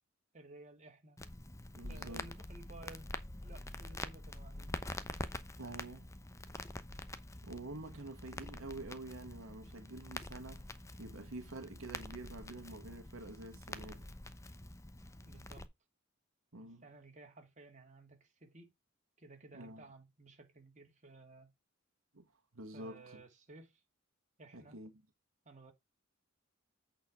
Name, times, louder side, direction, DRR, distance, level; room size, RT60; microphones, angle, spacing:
voice 1, 0.3-1.2 1.9-3.1 3.4-4.8 15.2-15.7 16.6-18.7 19.2-21.5 22.7-23.8 24.4-24.8 25.4-25.7, right 2 dB, 35° right, 2.3 m, -56 dB
Crackle, 1.2-15.6, left 2 dB, 15° left, 0.8 m, -46 dB
voice 2, 1.7-2.3 5.6-6.1 7.4-14.1 16.5-16.9 19.5-19.8 22.1-22.3 22.5-23.2 24.5-24.9, right 2 dB, 85° right, 1.5 m, -48 dB
8.5 x 4.6 x 4.7 m
head